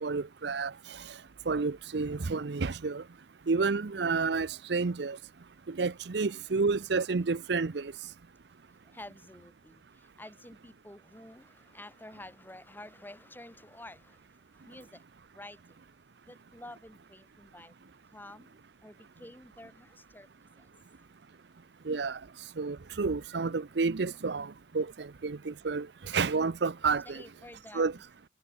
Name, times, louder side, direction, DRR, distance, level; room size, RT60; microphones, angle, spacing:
voice 1, 0.0-0.7 1.5-3.0 3.5-5.2 5.8-7.9 21.9-22.2 22.6-24.5 24.7-25.9 26.1-27.2 27.7-27.9, right 4 dB, 65° right, 0.6 m, -30 dB
voice 2, 8.8-15.0 15.3-15.9 16.2-20.3 20.6-20.7 21.0-21.1 27.0-28.0, left 1 dB, 10° left, 3.1 m, -50 dB
head